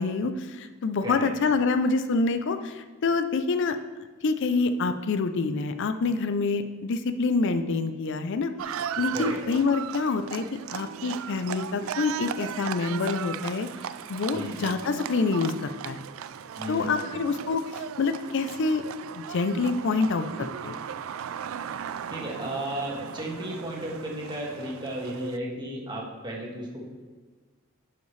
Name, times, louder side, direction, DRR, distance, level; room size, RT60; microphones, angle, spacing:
voice 1, 0.0-3.8 4.2-8.5 9.0-10.4 10.7-13.7 14.1-16.0 16.7-18.8 19.1-20.8, left 4 dB, 60° left, 9 dB, 0.4 m, -26 dB
Livestock farm animals working animals, 8.6-25.4, right 8 dB, 70° right, 0.3 m, -37 dB
voice 2, 16.6-17.3 22.1-26.8, equal, 20° right, -3 dB, 1.6 m, -34 dB
11.5 x 5.3 x 3.2 m, 1.4 s
head